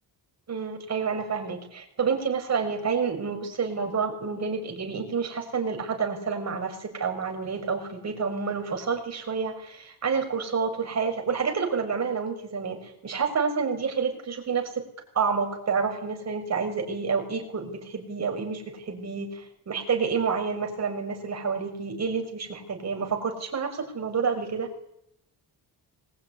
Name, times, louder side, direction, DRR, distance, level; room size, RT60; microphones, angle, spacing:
voice 1, 0.5-14.9 15.1-24.7, right 5 dB, 40° right, 3 dB, 6.6 m, -29 dB
25.5 x 22.0 x 9.9 m, 0.76 s
wide cardioid pair, 170°, 41 cm